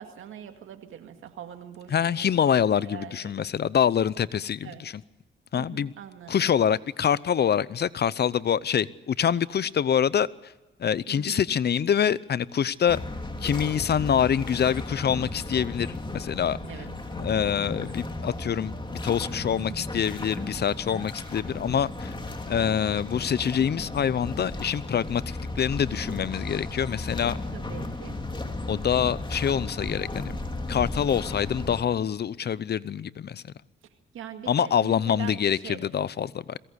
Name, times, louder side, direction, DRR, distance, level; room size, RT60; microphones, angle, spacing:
voice 1, 0.0-2.5 2.8-3.3 4.6-4.8 5.6-6.5 11.1-11.5 16.6-16.9 19.6-19.9 27.5-28.2 34.1-35.8, right 9 dB, 85° right, 2.1 m, -42 dB
voice 2, 1.9-4.9 5.5-5.9 6.3-10.5 10.8-13.0 13.4-15.9 16.1-16.6 17.1-22.2 22.5-27.4 28.7-30.4 30.7-33.4 34.5-36.6, left 8 dB, 55° left, 0.7 m, -25 dB
sound 1, 12.9-31.8, left 2 dB, 25° left, 3.0 m, -35 dB
22.0 x 17.0 x 8.1 m
cardioid pair, 70°, 20 cm